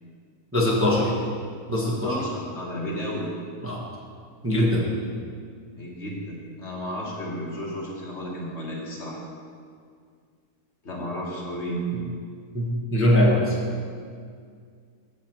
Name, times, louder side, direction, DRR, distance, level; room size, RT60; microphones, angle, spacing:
voice 1, 0.5-1.1 1.7-2.1 3.6-3.8 4.4-4.9 12.5-13.5, left 1 dB, 10° right, -4 dB, 1.1 m, -21 dB
voice 2, 1.7-3.3 5.8-9.2 10.8-11.8, equal, 45° left, -3 dB, 1.7 m, -33 dB
8.7 x 5.2 x 7.6 m, 2.1 s
omnidirectional pair, 1.6 m